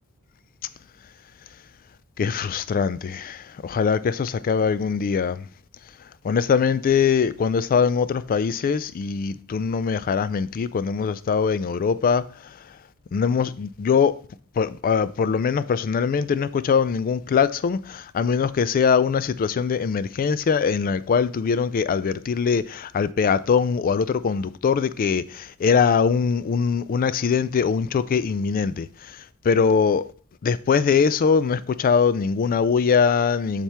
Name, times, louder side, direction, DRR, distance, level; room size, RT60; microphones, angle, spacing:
voice 1, 2.2-5.5 6.2-12.6 13.1-14.2 14.6-30.1 30.4-33.6, left 6 dB, 40° left, 0.3 m, -22 dB
7.2 x 5.9 x 3.4 m
head